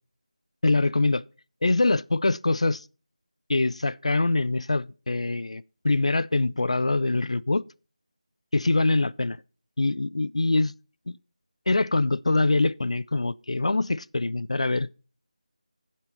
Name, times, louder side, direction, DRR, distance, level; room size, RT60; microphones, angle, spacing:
voice 1, 0.6-1.2 1.6-2.8 3.5-7.6 8.5-9.4 9.8-10.7 11.1-11.2 11.7-14.9, left 2 dB, 55° left, 0.4 m, -24 dB
7.4 x 6.8 x 5.4 m
figure-of-eight pair, 165°, 4 cm